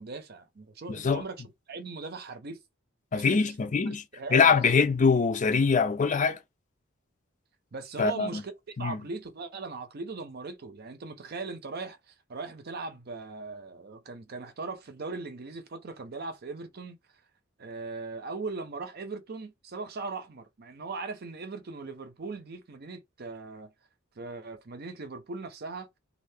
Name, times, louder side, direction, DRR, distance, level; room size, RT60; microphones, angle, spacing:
voice 1, 0.0-1.4 1.7-2.6 3.1-3.5 4.1-4.5 7.7-17.0 17.6-23.7 24.2-25.9, right 3 dB, 50° right, 0.6 m, -39 dB
voice 2, 0.9-1.2 3.1-4.0 4.3-6.4 8.0-8.4 8.8-9.0, left 5 dB, 40° left, 0.5 m, -23 dB
2.7 x 2.5 x 3.4 m
head